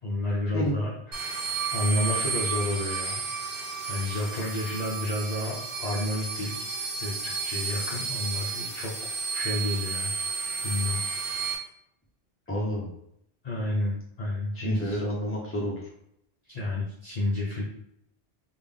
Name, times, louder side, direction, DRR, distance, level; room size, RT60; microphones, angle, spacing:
voice 1, 0.0-1.4 1.7-3.2 3.8-8.9 9.3-10.1 10.6-11.0 13.4-15.0 16.5-17.6, left 1 dB, 45° left, -5 dB, 0.7 m, -30 dB
sound 1, 1.1-11.5, right 5 dB, 55° right, 1.0 m, -32 dB
voice 2, 12.5-12.9 14.5-15.9, equal, 15° left, -3 dB, 0.8 m, -30 dB
3.5 x 2.4 x 3.5 m, 0.76 s
omnidirectional pair, 1.1 m